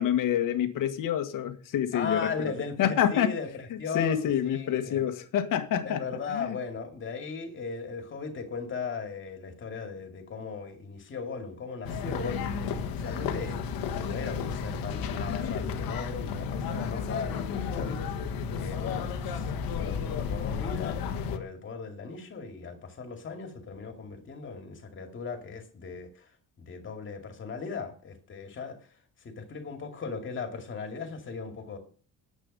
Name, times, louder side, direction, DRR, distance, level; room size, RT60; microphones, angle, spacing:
voice 1, 0.0-2.2 2.8-3.3 3.9-6.0 6.3-6.5, left 10 dB, 65° left, 1.6 m, -27 dB
voice 2, 1.9-5.1 5.8-18.0 18.6-26.3 26.6-31.8, left 5 dB, 35° left, 2.4 m, -37 dB
sound 1, 11.8-21.4, left 6 dB, 85° left, 1.6 m, -32 dB
10.5 x 8.1 x 5.5 m
cardioid pair, 180°, 35 cm